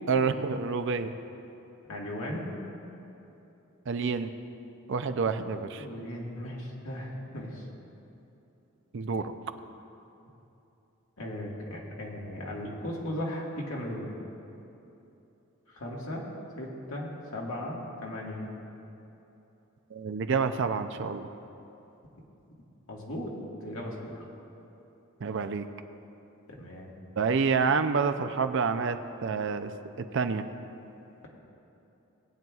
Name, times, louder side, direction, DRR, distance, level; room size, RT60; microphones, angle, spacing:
voice 1, 0.1-1.1 3.9-4.3 4.9-5.9 8.9-9.3 19.9-21.3 25.2-25.7 27.2-29.7 30.0-30.5, right 5 dB, 60° right, 8 dB, 0.5 m, -28 dB
voice 2, 1.9-2.5 5.8-7.7 11.2-14.1 15.7-16.3 16.6-18.5 22.9-23.3 23.6-24.3 26.6-26.9, left 1 dB, 80° left, -3 dB, 1.8 m, -37 dB
19.0 x 9.1 x 2.4 m, 3.0 s
head